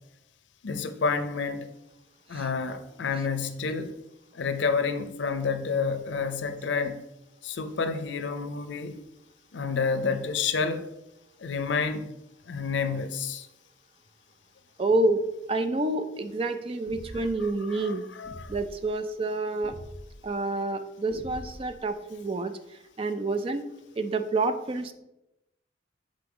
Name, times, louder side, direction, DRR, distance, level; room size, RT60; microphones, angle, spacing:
voice 1, 0.6-1.7 2.3-3.9 4.3-7.0 7.4-9.0 9.5-10.8 11.4-12.1 12.5-13.5 17.7-18.5, left 5 dB, 75° left, 0.5 m, -29 dB
voice 2, 14.8-15.2 15.5-18.0 18.5-19.7 20.2-23.7 24.0-24.9, right 2 dB, 30° right, 0.4 m, -28 dB
sound 1, 16.9-17.5 18.2-18.7 19.6-20.1 21.1-21.8, equal, 5° right, 1.1 m, -43 dB
5.3 x 3.8 x 4.8 m
head